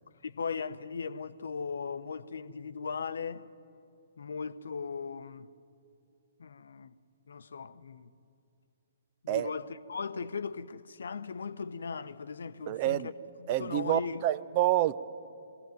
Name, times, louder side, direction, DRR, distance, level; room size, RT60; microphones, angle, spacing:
voice 1, 0.2-3.5 4.2-5.5 6.4-6.9 7.3-8.1 9.2-13.1 13.4-14.2, left 5 dB, 65° left, 0.8 m, -38 dB
voice 2, 12.7-13.1 13.5-15.0, right 13 dB, 35° right, 0.6 m, -28 dB
23.5 x 17.5 x 9.3 m
figure-of-eight pair, 125°, 0 cm